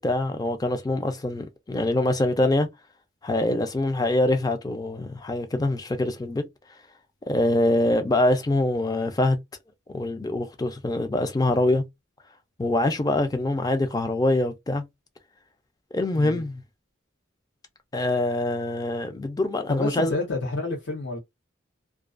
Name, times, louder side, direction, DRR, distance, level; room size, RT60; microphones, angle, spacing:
voice 1, 0.0-2.7 3.2-6.4 7.3-9.4 9.9-11.8 12.6-14.8 15.9-16.6 17.9-20.1, left 1 dB, 20° left, 0.4 m, -24 dB
voice 2, 19.7-21.2, left 2 dB, 70° left, 0.7 m, -29 dB
2.3 x 2.3 x 2.4 m
head